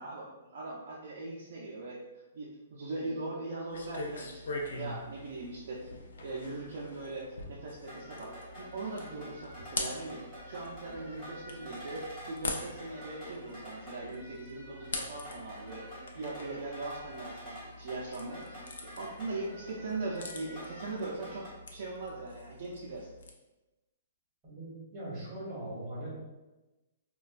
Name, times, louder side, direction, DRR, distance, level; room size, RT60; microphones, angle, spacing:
voice 1, 0.0-2.0 2.3-5.9 6.2-23.1, right 2 dB, 45° right, -4 dB, 0.4 m, -40 dB
sound 1, 3.7-23.3, left 2 dB, 75° left, 0.5 m, -44 dB
sound 2, 7.8-21.5, equal, 5° left, 1.0 m, -48 dB
voice 2, 24.4-26.1, right 1 dB, 15° right, -7 dB, 1.1 m, -40 dB
4.1 x 2.2 x 2.4 m, 1.1 s
hypercardioid pair, 180°, 0 cm